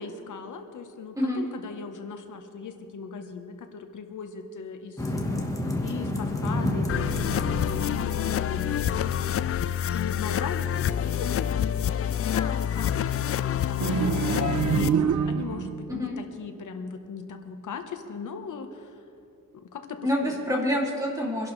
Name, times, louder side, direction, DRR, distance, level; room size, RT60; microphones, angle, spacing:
voice 1, 0.0-5.0 5.8-9.4 9.9-10.9 11.2-11.7 12.2-15.0 15.3-18.7 19.7-20.4, left 5 dB, 60° left, 6 dB, 1.2 m, -38 dB
sound 1, 5.0-8.8, left 1 dB, 10° left, 1.4 m, -29 dB
sound 2, 6.9-14.9, left 10 dB, 45° left, 0.4 m, -27 dB
sound 3, 13.8-15.8, right 7 dB, 55° right, 0.6 m, -25 dB
voice 2, 20.0-21.5, left 1 dB, 10° right, -2 dB, 2.7 m, -27 dB
23.5 x 11.5 x 3.3 m, 2.7 s
wide cardioid pair, 130°, 34 cm